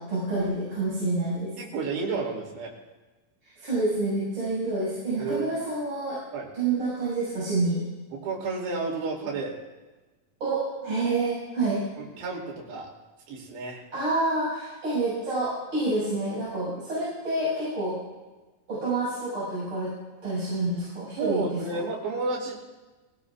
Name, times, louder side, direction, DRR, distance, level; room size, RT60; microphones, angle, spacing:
voice 1, 0.0-1.5 3.6-6.2 6.5-7.9 10.4-11.8 13.9-18.0 18.7-19.9 20.2-21.8, right 2 dB, 30° right, -9 dB, 7.3 m, -28 dB
voice 2, 1.6-2.7 5.2-5.5 6.3-6.5 8.1-9.6 12.0-12.9 13.3-13.8 21.2-22.6, right 3 dB, 80° right, -2 dB, 4.9 m, -31 dB
21.5 x 19.0 x 2.4 m, 1.2 s
omnidirectional pair, 4.9 m